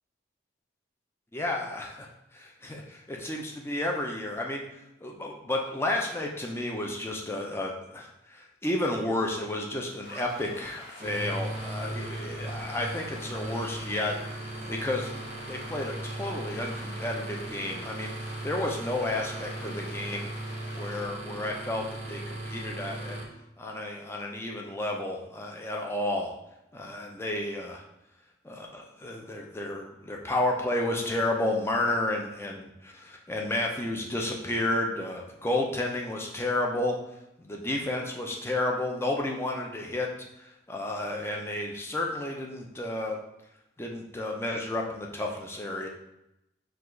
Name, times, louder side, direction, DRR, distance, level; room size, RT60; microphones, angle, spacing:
voice 1, 1.3-2.1 2.3-4.6 5.0-15.1 15.5-20.3 20.7-23.2 23.6-26.3 26.7-27.8 28.4-37.0 37.4-40.1 40.4-43.2 43.8-45.9, left 1 dB, 15° left, 0 dB, 0.4 m, -31 dB
sound 1, 10.0-21.1, left 1 dB, 60° left, 0.9 m, -47 dB
sound 2, 11.0-23.2, right 1 dB, 35° right, 0.6 m, -38 dB
4.8 x 2.4 x 3.7 m, 0.87 s
head